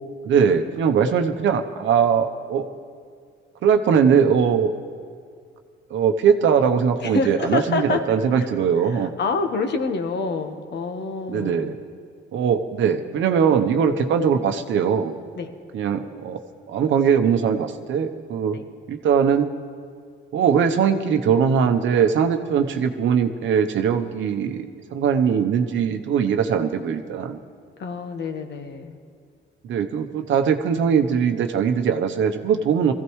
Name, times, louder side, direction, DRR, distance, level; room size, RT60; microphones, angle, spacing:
voice 1, 0.2-2.7 3.6-4.7 5.9-9.1 11.3-11.8 12.3-15.1 15.7-16.4 16.7-18.6 18.9-19.5 20.3-27.4 29.6-32.9, right 7 dB, 75° right, 7 dB, 0.9 m, -21 dB
voice 2, 7.0-8.0 8.3-8.5 8.9-11.7 14.0-14.1 15.4-15.5 18.5-18.7 27.8-29.0, left 4 dB, 60° left, 7 dB, 1.3 m, -27 dB
21.5 x 15.5 x 3.2 m, 2.2 s
cardioid pair, 90°, 20 cm